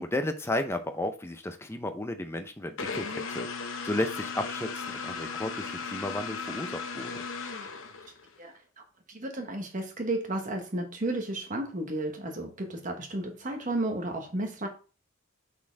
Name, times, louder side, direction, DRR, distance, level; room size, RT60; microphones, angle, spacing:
voice 1, 0.0-3.5 3.8-7.2, left 1 dB, 10° left, 0.5 m, -33 dB
sound 1, 2.8-8.4, left 5 dB, 60° left, 0.8 m, -36 dB
voice 2, 8.4-14.7, right 1 dB, 35° right, 1.0 m, -33 dB
6.1 x 4.3 x 4.5 m
head